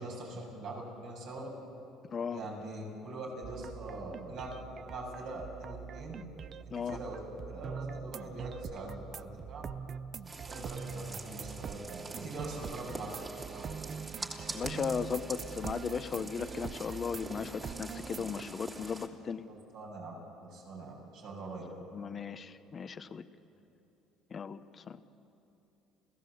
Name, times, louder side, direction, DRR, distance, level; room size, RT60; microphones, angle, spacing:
voice 1, 0.0-1.5 2.3-4.5 4.8-6.2 6.7-9.6 10.5-13.1 13.5-13.6 19.7-20.1 20.4-21.7, right 2 dB, 70° right, -1 dB, 7.7 m, -43 dB
voice 2, 2.1-2.4 6.7-7.0 14.5-19.5 21.9-23.3 24.3-25.0, left 6 dB, 40° left, 10 dB, 1.0 m, -36 dB
sound 1, 3.4-18.4, right 7 dB, 45° right, 0.6 m, -43 dB
sound 2, 10.2-19.1, right 2 dB, 25° right, 2.9 m, -45 dB
29.5 x 16.0 x 8.0 m, 3.0 s
supercardioid pair, 80°, 0 cm